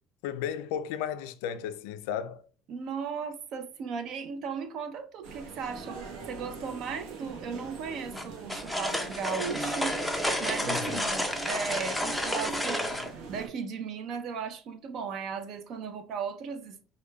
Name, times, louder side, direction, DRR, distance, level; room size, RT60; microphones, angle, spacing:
voice 1, 0.2-2.4 10.6-11.1, left 9 dB, 85° left, 0.4 m, -34 dB
voice 2, 2.7-12.9 13.3-16.8, right 6 dB, 50° right, 0.5 m, -36 dB
sound 1, 5.2-13.5, right 4 dB, 70° right, 0.9 m, -42 dB
sound 2, 8.1-13.1, left 1 dB, ahead, 0.4 m, -31 dB
4.9 x 2.2 x 2.2 m
cardioid pair, 145°, 0 cm